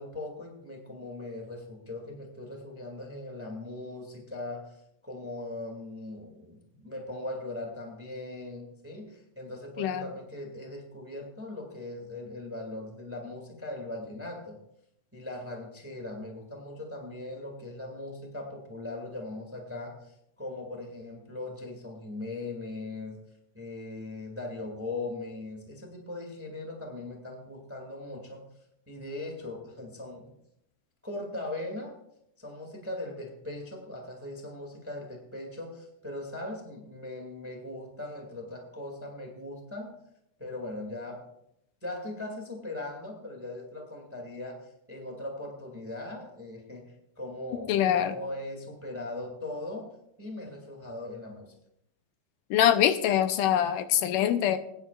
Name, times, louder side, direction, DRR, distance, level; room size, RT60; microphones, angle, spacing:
voice 1, 0.0-14.6 15.1-23.2 23.5-28.5 28.9-30.3 31.0-31.9 32.4-39.9 40.4-41.2 41.8-49.9 50.2-51.5, left 2 dB, 5° right, 1 dB, 1.3 m, -39 dB
voice 2, 47.7-48.2 52.5-54.6, left 10 dB, 85° left, 9 dB, 2.3 m, -24 dB
21.0 x 10.0 x 2.4 m, 0.77 s
omnidirectional pair, 3.7 m